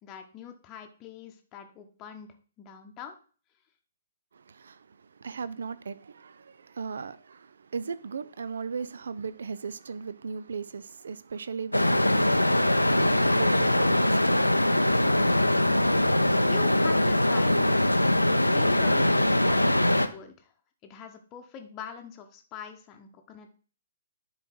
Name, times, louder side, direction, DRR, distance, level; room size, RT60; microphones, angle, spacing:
voice 1, 0.0-3.2 16.5-17.6 18.2-20.5 20.8-23.5, left 8 dB, 25° left, 0.9 m, -43 dB
voice 2, 4.3-14.7, right 5 dB, 60° right, 0.4 m, -37 dB
sound 1, 11.7-20.1, left 1 dB, 85° left, 0.5 m, -22 dB
9.7 x 3.9 x 4.3 m
figure-of-eight pair, 125°, 0 cm